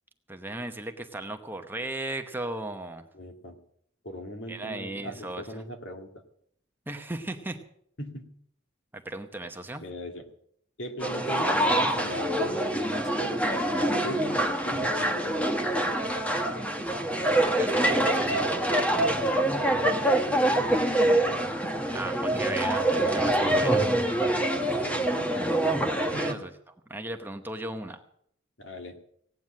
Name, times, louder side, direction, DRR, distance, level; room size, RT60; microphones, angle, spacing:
voice 1, 0.3-3.0 4.5-5.6 6.9-7.6 8.9-9.8 17.4-18.6 21.9-23.9 26.0-26.5 26.9-28.0, right 1 dB, 10° right, 6 dB, 0.9 m, -36 dB
voice 2, 3.1-3.6 4.0-6.2 8.0-8.3 9.8-10.2 10.8-15.4 20.0-21.4 24.2-25.2 26.1-26.4 28.6-29.0, equal, 65° left, 4 dB, 2.1 m, -40 dB
sound 1, 11.0-26.3, right 1 dB, 5° left, 1.2 m, -25 dB
17.0 x 9.4 x 7.5 m, 0.67 s
head